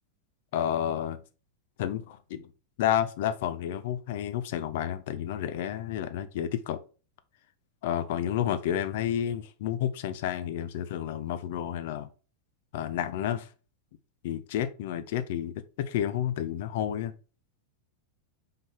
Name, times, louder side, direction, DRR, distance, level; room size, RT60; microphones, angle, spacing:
voice 1, 0.5-1.2 1.8-2.5 2.8-6.8 7.8-12.1 12.7-13.5 14.2-17.1, left 10 dB, 55° left, 0.8 m, -30 dB
5.6 x 5.6 x 3.6 m
figure-of-eight pair, 90°, 0 cm